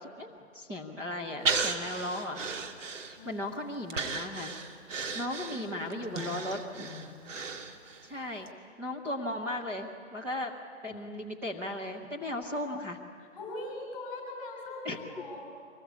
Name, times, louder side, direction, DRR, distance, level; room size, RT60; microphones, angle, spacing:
voice 1, 0.0-2.4 3.2-4.5 5.1-6.9 8.0-8.5 8.8-10.5 10.8-13.0 14.8-15.0, left 1 dB, 5° right, -3 dB, 0.7 m, -36 dB
Breathing, 1.5-3.4 3.9-8.1 8.5-8.6, right 4 dB, 75° right, 2.3 m, -35 dB
voice 2, 5.5-6.4 6.8-7.2 10.9-11.2 13.2-15.5, left 2 dB, 30° left, 1 dB, 7.1 m, -42 dB
23.5 x 20.0 x 8.2 m, 2.2 s
hypercardioid pair, 155°, 38 cm